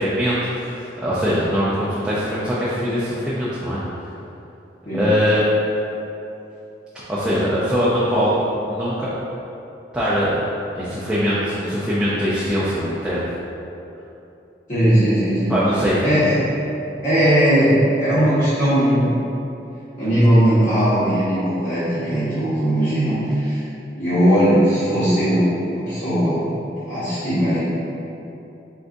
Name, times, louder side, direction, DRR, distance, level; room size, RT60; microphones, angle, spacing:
voice 1, 0.0-3.8 4.9-5.4 7.1-8.4 8.7-9.1 9.9-10.4 10.7-13.2 15.5-16.0, equal, 5° right, -11 dB, 0.5 m, -21 dB
voice 2, 14.7-15.5 16.0-16.4 17.0-19.1 20.0-23.6 24.0-26.4 26.9-27.6, equal, 45° left, -16 dB, 1.3 m, -18 dB
4.5 x 3.8 x 2.6 m, 2.9 s
head